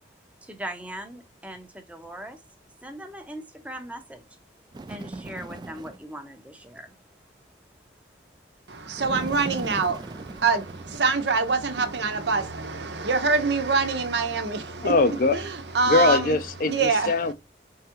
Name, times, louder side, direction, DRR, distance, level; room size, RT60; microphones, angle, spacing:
voice 1, 0.4-2.4 2.8-4.3 4.9-7.0, right 1 dB, 10° right, 0.7 m, -39 dB
Bird, 4.7-6.1 9.0-11.5, right 2 dB, 25° right, 0.3 m, -38 dB
voice 2, 8.7-14.9 15.3-16.4 16.6-17.1, right 4 dB, 75° right, 0.9 m, -25 dB
voice 3, 14.8-15.4 15.9-17.3, left 3 dB, 50° left, 0.5 m, -22 dB
4.8 x 3.5 x 3.0 m
head